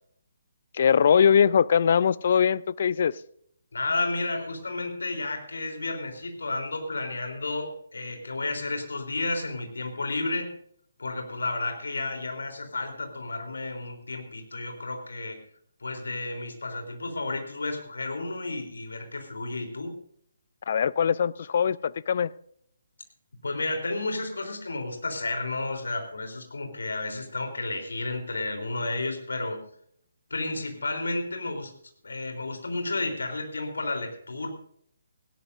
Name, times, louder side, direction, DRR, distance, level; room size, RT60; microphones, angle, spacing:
voice 1, 0.7-3.1 20.7-22.3, left 7 dB, 45° left, 0.4 m, -21 dB
voice 2, 3.7-10.5 11.0-15.4 15.8-19.9 23.4-29.6 30.3-31.7 32.0-34.5, left 2 dB, 65° left, 3.7 m, -32 dB
19.0 x 16.5 x 2.7 m
figure-of-eight pair, 140°, 0 cm